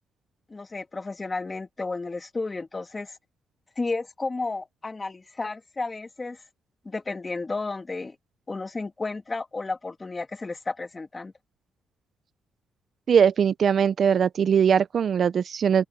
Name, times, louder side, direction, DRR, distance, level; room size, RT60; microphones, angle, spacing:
voice 1, 0.5-3.2 3.7-6.4 6.8-8.1 8.5-11.3, left 3 dB, 25° left, 1.7 m, -32 dB
voice 2, 13.1-15.8, right 7 dB, 50° right, 0.6 m, -21 dB
open air
cardioid pair, 90°, 0 cm